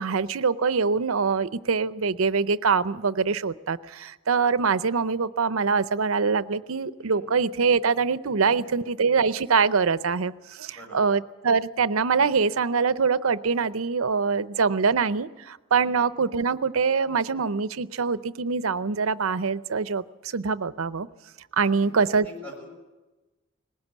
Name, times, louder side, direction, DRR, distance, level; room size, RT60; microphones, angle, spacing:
voice 1, 0.0-20.0 20.3-21.1 21.5-22.2, right 5 dB, 80° right, 15 dB, 0.7 m, -24 dB
voice 2, 7.0-7.3 8.4-8.7 10.7-11.1 15.7-16.0 21.5-21.7 22.2-22.7, left 2 dB, 10° left, -1 dB, 6.7 m, -44 dB
20.0 x 17.0 x 8.3 m, 1.1 s
head